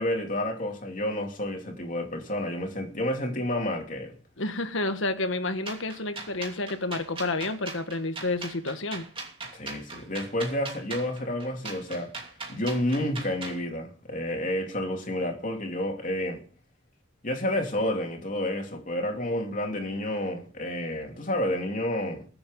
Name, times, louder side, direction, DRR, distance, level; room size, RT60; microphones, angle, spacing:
voice 1, 0.0-4.2 9.5-12.1 12.5-16.4 17.2-22.3, left 1 dB, 40° left, 3.2 m, -30 dB
voice 2, 4.4-9.1, left 2 dB, 70° left, 1.6 m, -30 dB
sound 1, 5.7-13.6, right 3 dB, 25° right, 2.8 m, -39 dB
22.0 x 8.0 x 5.4 m
head